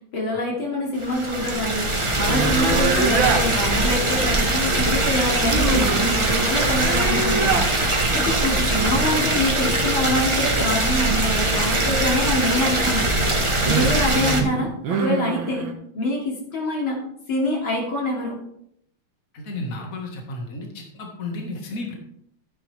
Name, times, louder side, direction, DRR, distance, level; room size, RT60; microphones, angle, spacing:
voice 1, 0.1-7.6 8.1-13.1 13.7-15.7 16.0-17.0 17.3-18.4, left 1 dB, 80° left, -1 dB, 3.5 m, -25 dB
sound 1, 1.0-14.4, right 2 dB, 20° right, 1.1 m, -22 dB
sound 2, 2.3-3.5 5.4-7.7 13.0-15.7, right 5 dB, 75° right, 2.1 m, -25 dB
voice 2, 13.4-13.8 19.3-21.9, left 2 dB, 45° left, 1 dB, 2.2 m, -33 dB
13.0 x 9.7 x 3.5 m, 0.71 s
omnidirectional pair, 2.2 m